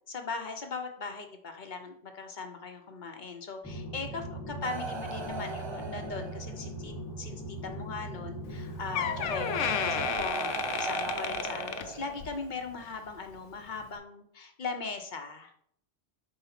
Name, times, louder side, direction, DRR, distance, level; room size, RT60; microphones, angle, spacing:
voice 1, 0.1-15.5, left 4 dB, 45° left, 5 dB, 0.8 m, -39 dB
sound 1, 3.6-10.1, right 1 dB, ahead, 1.7 m, -40 dB
sound 2, 4.6-6.8 8.1-8.2 8.9-12.5 13.6-13.8, right 4 dB, 40° right, 0.4 m, -37 dB
Door, 8.5-8.6 8.9-12.4 12.8-13.1 13.8-13.9, left 8 dB, 80° left, 0.9 m, -33 dB
4.8 x 4.1 x 5.7 m, 0.68 s
omnidirectional pair, 1.2 m